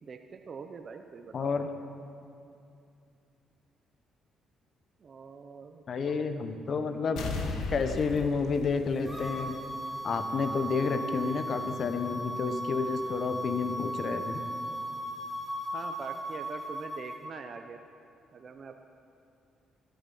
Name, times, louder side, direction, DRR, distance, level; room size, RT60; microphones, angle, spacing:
voice 1, 0.0-1.6 5.0-6.3 15.7-17.8 18.3-18.8, right 5 dB, 45° right, 6 dB, 0.7 m, -44 dB
voice 2, 1.3-1.7 5.9-7.3 7.7-9.6 10.0-14.4, left 5 dB, 55° left, 8 dB, 1.0 m, -30 dB
sound 1, 7.2-9.8 10.1-10.2, left 3 dB, 80° left, 1.5 m, -36 dB
sound 2, 9.0-17.2, equal, 5° right, 2.3 m, -37 dB
13.0 x 12.0 x 5.5 m, 2.5 s
cardioid pair, 90°, 0 cm